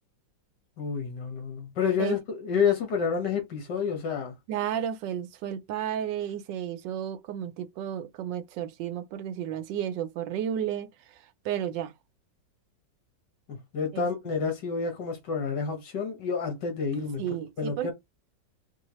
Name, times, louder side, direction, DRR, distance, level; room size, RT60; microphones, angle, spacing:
voice 1, 0.8-4.3 13.5-17.2 17.6-17.9, left 6 dB, 70° left, 1.8 m, -29 dB
voice 2, 4.5-10.9 11.4-11.9 13.9-14.1 17.2-17.9, right 10 dB, 80° right, 1.3 m, -32 dB
4.7 x 2.4 x 3.0 m
omnidirectional pair, 1.9 m